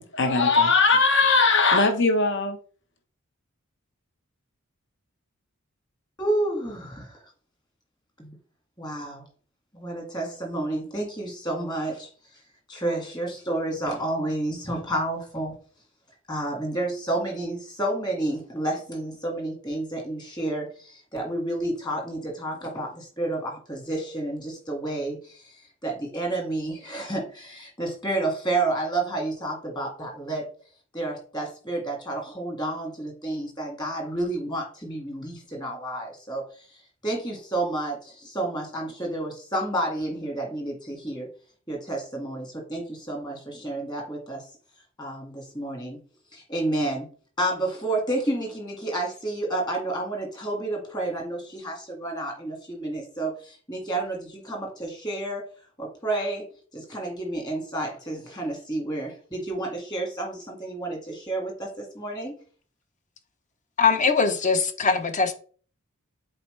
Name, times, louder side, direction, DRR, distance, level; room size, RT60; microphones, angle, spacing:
voice 1, 0.0-2.6, left 3 dB, 60° left, 1.1 m, -20 dB
voice 2, 6.2-7.2 8.2-8.3 8.8-9.3 9.7-12.1 12.7-15.5 16.3-25.5 25.8-30.5 30.9-36.5 37.0-41.3 41.7-44.4 45.0-46.0 46.3-47.1 47.4-55.5 55.8-56.5 56.7-62.3, right 2 dB, 20° left, 2.0 m, -30 dB
voice 3, 63.8-65.3, left 5 dB, 35° left, 0.8 m, -21 dB
7.7 x 4.3 x 3.3 m
head